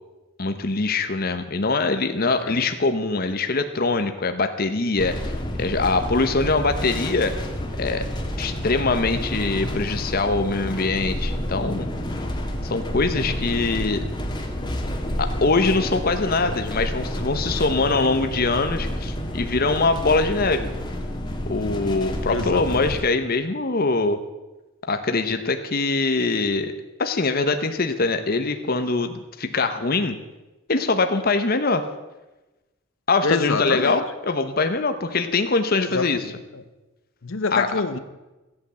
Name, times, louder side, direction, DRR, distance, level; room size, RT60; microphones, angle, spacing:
voice 1, 0.4-7.3 7.8-8.1 8.4-11.9 12.6-14.1 15.2-20.7 21.5-24.2 24.9-26.7 27.0-30.2 30.7-31.8 33.1-36.2 37.5-37.7, left 3 dB, 45° left, 8 dB, 0.9 m, -23 dB
sound 1, 5.0-23.0, equal, 20° left, 1.7 m, -29 dB
voice 2, 22.3-22.9 33.2-34.0 35.8-36.6 37.2-38.0, left 4 dB, 70° left, 12 dB, 0.9 m, -27 dB
15.0 x 8.6 x 7.6 m, 1.1 s
head